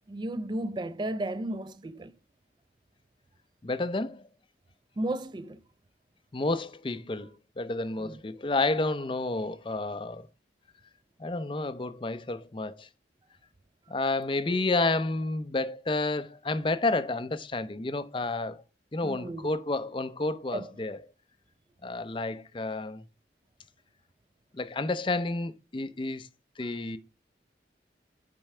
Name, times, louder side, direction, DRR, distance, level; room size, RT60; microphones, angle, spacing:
voice 1, 0.1-2.1 5.0-5.6 8.0-8.2 19.0-19.5 20.5-20.7, right 1 dB, 25° right, 0.4 m, -34 dB
voice 2, 3.6-4.2 6.3-7.3 7.6-10.3 11.2-12.9 13.9-18.6 18.9-21.0 21.8-23.0 24.5-26.3 26.6-27.0, left 2 dB, 30° left, 0.5 m, -30 dB
8.8 x 4.7 x 3.2 m
head